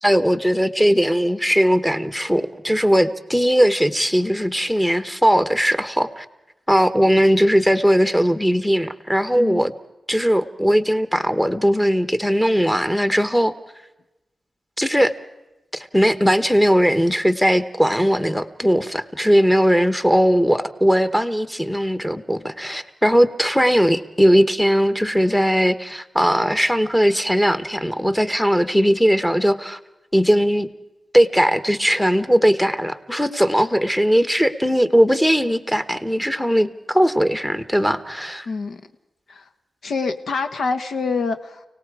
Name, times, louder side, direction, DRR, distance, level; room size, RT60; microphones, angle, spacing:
voice 1, 0.0-6.2 6.7-9.7 10.1-13.5 14.8-15.1 15.7-29.8 30.1-30.7 31.1-38.5, equal, 5° left, 11 dB, 1.0 m, -19 dB
voice 2, 9.4-9.7 38.4-38.8 39.3-39.5 39.8-41.6, left 4 dB, 75° left, 8 dB, 1.4 m, -26 dB
30.0 x 18.0 x 4.8 m, 0.98 s
wide cardioid pair, 165°, 0 cm